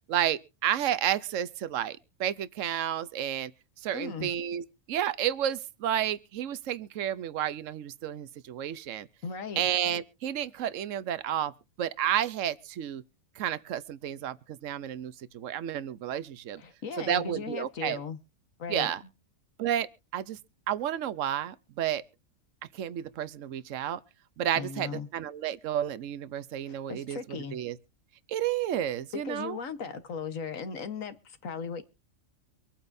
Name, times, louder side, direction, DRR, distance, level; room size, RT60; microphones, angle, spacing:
voice 1, 0.1-3.5 3.8-9.1 9.6-11.5 11.8-13.0 13.4-16.6 17.0-18.0 18.7-19.0 19.6-19.9 20.1-20.4 20.7-22.0 22.7-24.0 24.4-27.8 28.3-29.6, right 10 dB, 70° right, 1.1 m, -31 dB
voice 2, 3.9-4.3 9.2-9.6 16.6-18.2 18.6-18.9 24.6-25.1 26.7-27.6 29.1-31.8, left 5 dB, 85° left, 1.7 m, -37 dB
25.0 x 8.8 x 2.7 m
omnidirectional pair, 1.4 m